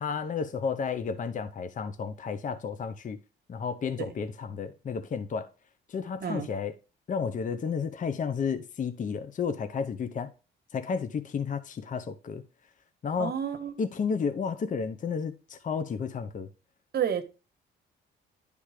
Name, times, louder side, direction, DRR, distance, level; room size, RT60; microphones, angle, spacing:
voice 1, 0.0-3.2 3.5-5.5 5.9-6.7 7.1-10.3 10.7-12.4 13.0-13.3 13.8-16.5, left 6 dB, 40° left, 0.7 m, -32 dB
voice 2, 6.2-6.5 13.2-13.8 16.9-17.2, right 8 dB, 55° right, 1.2 m, -30 dB
10.0 x 3.5 x 4.9 m
cardioid pair, 90°, 20 cm